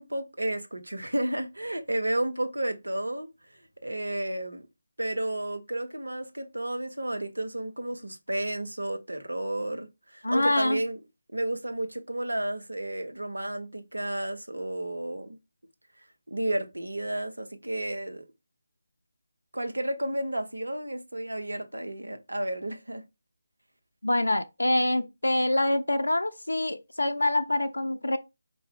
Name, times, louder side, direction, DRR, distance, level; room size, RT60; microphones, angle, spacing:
voice 1, 0.0-3.3 3.5-4.7 5.0-11.0 11.3-15.4 16.3-18.2 19.5-23.0, right 1 dB, 75° right, 0.9 m, -32 dB
voice 2, 10.2-10.8 24.0-28.2, left 1 dB, 75° left, 0.4 m, -25 dB
4.6 x 2.6 x 3.5 m
figure-of-eight pair, 155°, 0 cm